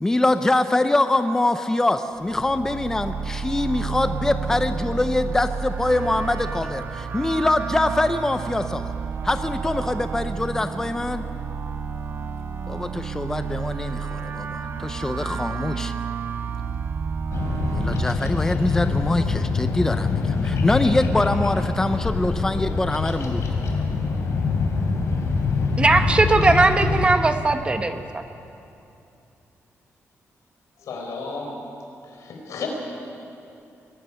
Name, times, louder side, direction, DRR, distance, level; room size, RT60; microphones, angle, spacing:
voice 1, 0.0-8.9 9.2-11.2 12.7-15.9 17.7-23.4, left 2 dB, 10° left, 9 dB, 0.6 m, -24 dB
sound 1, 2.2-18.1, right 5 dB, 45° right, 0.8 m, -30 dB
Bird vocalization bird call bird song, 17.3-27.1, left 4 dB, 70° left, 3.2 m, -24 dB
voice 2, 25.8-28.0, right 3 dB, 20° right, 7 dB, 1.0 m, -19 dB
voice 3, 30.8-31.6 32.0-32.7, left 4 dB, 90° left, 1 dB, 4.6 m, -33 dB
22.0 x 12.5 x 9.9 m, 2.8 s
wide cardioid pair, 165°, 5 cm